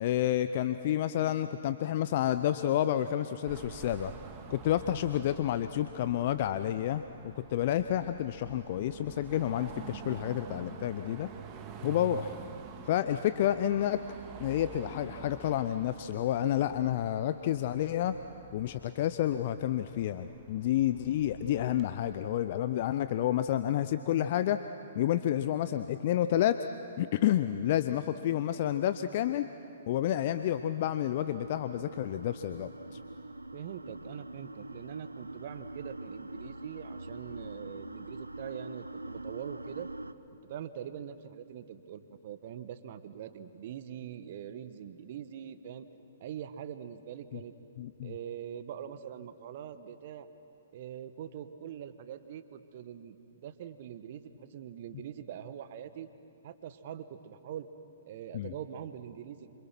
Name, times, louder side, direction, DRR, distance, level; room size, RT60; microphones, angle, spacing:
voice 1, 0.0-4.1 4.5-11.3 11.8-12.4 12.9-14.0 14.4-18.2 18.5-24.6 24.9-26.6 27.0-29.5 29.9-33.0 47.3-47.4 47.8-48.1 58.3-58.5, left 11 dB, 45° left, 11 dB, 0.6 m, -30 dB
Car passing by / Traffic noise roadway noise / Engine, 3.5-22.2, right 7 dB, 30° right, 1.8 m, -49 dB
sound 1, 29.8-40.1, right 2 dB, 90° right, 0.7 m, -44 dB
voice 2, 33.5-39.9 40.5-45.9 46.2-47.5 48.0-50.3 50.7-53.2 53.4-56.1 56.4-57.7 58.1-59.6, right 9 dB, 50° right, 12 dB, 1.2 m, -43 dB
27.5 x 26.0 x 6.1 m, 2.7 s
figure-of-eight pair, 120°, 0 cm